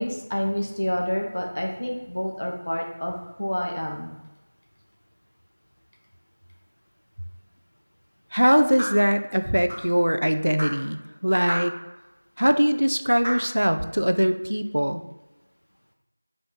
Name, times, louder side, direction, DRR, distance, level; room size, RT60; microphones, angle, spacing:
voice 1, 0.0-4.1, equal, 30° left, 1 dB, 0.5 m, -28 dB
voice 2, 8.3-11.7 12.4-15.0, equal, 70° right, 8 dB, 0.3 m, -22 dB
sound 1, 8.8-9.0 9.7-9.9 10.6-10.8 11.5-11.7 12.4-12.5 13.2-13.5, equal, 10° right, 1.2 m, -30 dB
3.3 x 3.0 x 3.8 m, 1.1 s
figure-of-eight pair, 180°, 0 cm